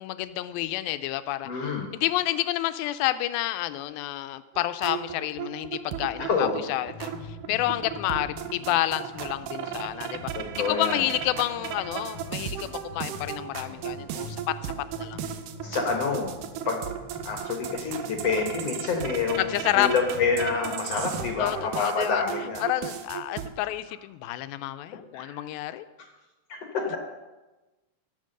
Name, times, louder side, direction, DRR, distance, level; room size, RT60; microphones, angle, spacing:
voice 1, 0.0-10.3 10.6-14.6 15.0-15.2 19.4-19.9 21.4-22.2 22.6-25.9 26.9-27.0, left 15 dB, 90° left, 12 dB, 2.4 m, -29 dB
voice 2, 1.4-1.9 6.2-6.6 7.5-7.6 10.3-11.0 15.6-16.3 16.7-16.8 17.3-22.6 25.1-25.4 26.5-27.0, left 4 dB, 60° left, 2 dB, 1.7 m, -28 dB
sound 1, 4.5-23.5, right 10 dB, 75° right, 2.1 m, -36 dB
sound 2, 6.6-21.7, left 2 dB, 20° right, 3.1 m, -44 dB
15.5 x 5.9 x 6.6 m, 1.1 s
omnidirectional pair, 4.1 m